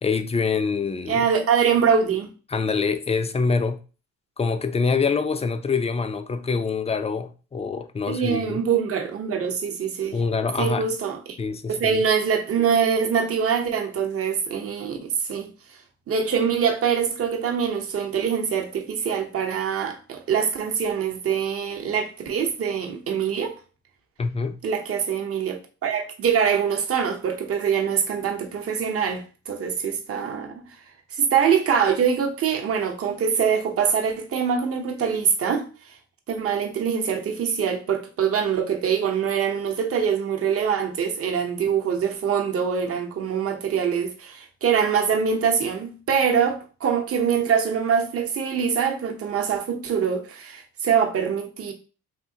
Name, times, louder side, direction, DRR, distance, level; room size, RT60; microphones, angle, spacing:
voice 1, 0.0-1.3 2.5-3.8 4.4-8.6 10.1-10.9 11.4-12.0 24.2-24.6, left 5 dB, 20° left, 0.4 m, -25 dB
voice 2, 1.1-2.3 8.1-10.2 10.6-11.4 11.7-15.5 16.1-23.5 24.6-30.6 31.1-35.7 36.3-51.7, right 7 dB, 50° right, 0.8 m, -24 dB
3.6 x 2.7 x 2.7 m
cardioid pair, 90°, 30 cm